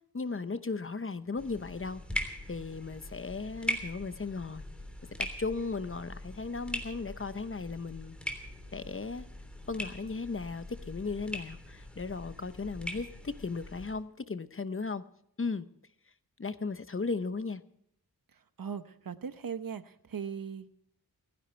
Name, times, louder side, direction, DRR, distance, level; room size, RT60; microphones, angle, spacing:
voice 1, 0.1-4.6 5.2-8.2 8.7-9.3 9.7-15.0 15.4-15.7 16.4-17.6, left 4 dB, 35° left, 12 dB, 0.8 m, -36 dB
JK Household Sequence, 1.4-13.9, equal, 5° left, 3.2 m, -41 dB
voice 2, 18.3-20.7, right 7 dB, 60° right, 11 dB, 1.0 m, -39 dB
29.0 x 10.5 x 3.4 m, 0.72 s
wide cardioid pair, 70°, 38 cm